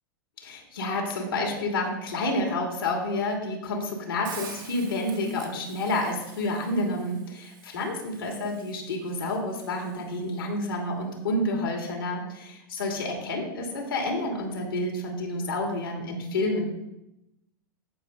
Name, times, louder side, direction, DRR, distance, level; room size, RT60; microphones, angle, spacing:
voice 1, 0.4-16.6, left 2 dB, 80° left, 1 dB, 2.9 m, -29 dB
Hiss, 4.2-10.3, right 8 dB, 65° right, 1.7 m, -47 dB
15.0 x 5.4 x 3.9 m, 0.89 s
hypercardioid pair, 105°, 12 cm